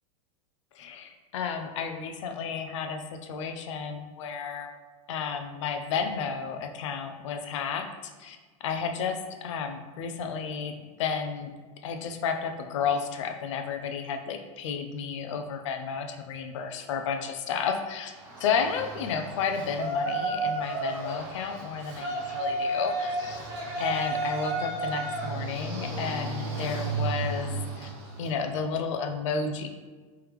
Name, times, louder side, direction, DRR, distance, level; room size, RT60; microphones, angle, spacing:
voice 1, 0.8-4.7 5.1-11.5 11.8-18.1 18.4-23.4 23.8-27.9 28.2-29.7, left 6 dB, 55° left, 6 dB, 0.4 m, -32 dB
Yell, 18.1-28.4, right 2 dB, 50° right, 0.9 m, -32 dB
3.4 x 3.1 x 3.3 m, 1.4 s
supercardioid pair, 175°, 18 cm